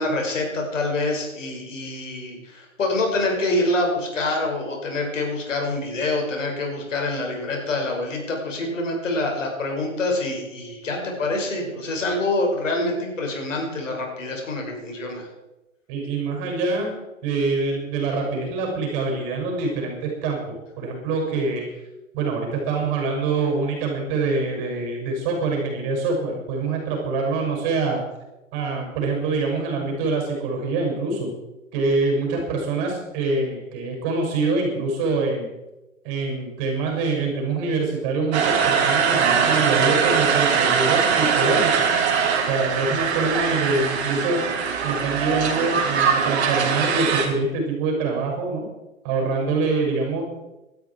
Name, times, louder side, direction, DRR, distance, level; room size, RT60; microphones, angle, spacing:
voice 1, 0.0-15.3, left 2 dB, 65° left, 1 dB, 6.0 m, -26 dB
voice 2, 15.9-16.9 17.2-21.6 22.1-28.0 28.5-31.3 31.7-35.5 36.0-41.9 42.4-44.4 44.8-48.7 49.0-50.2, right 3 dB, 35° right, 1 dB, 6.6 m, -25 dB
sound 1, 38.3-47.3, right 6 dB, 50° right, 3.3 m, -21 dB
19.0 x 13.0 x 4.7 m, 1.0 s
figure-of-eight pair, 120°, 40 cm